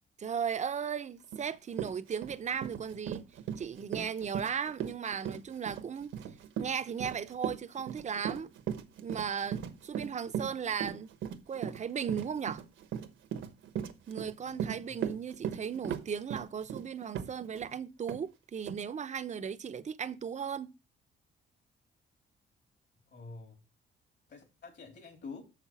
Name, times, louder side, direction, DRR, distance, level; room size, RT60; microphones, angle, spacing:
voice 1, 0.2-3.2 3.6-6.1 6.6-8.5 9.0-11.1 11.5-12.6 14.1-20.7, right 7 dB, 35° right, 0.7 m, -36 dB
Run, 1.3-1.4 1.7-17.7 18.1-18.2 18.7-18.8, right 9 dB, 75° right, 1.1 m, -38 dB
voice 2, 14.4-15.0 23.1-23.6 24.3-25.4, left 4 dB, 60° left, 3.3 m, -48 dB
6.7 x 5.8 x 6.0 m
cardioid pair, 90°, 20 cm